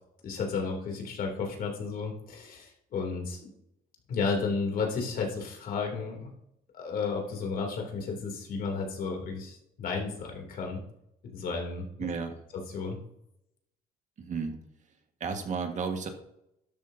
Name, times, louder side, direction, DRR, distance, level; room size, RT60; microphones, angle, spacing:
voice 1, 0.2-3.5 4.1-6.3 6.7-10.8 11.3-12.1 12.7-13.0, left 4 dB, 60° left, 1 dB, 3.0 m, -33 dB
voice 2, 12.0-12.4 14.2-14.6 15.2-16.1, right 5 dB, 45° right, 5 dB, 1.6 m, -32 dB
12.5 x 9.9 x 2.8 m, 0.80 s
cardioid pair, 110°, 17 cm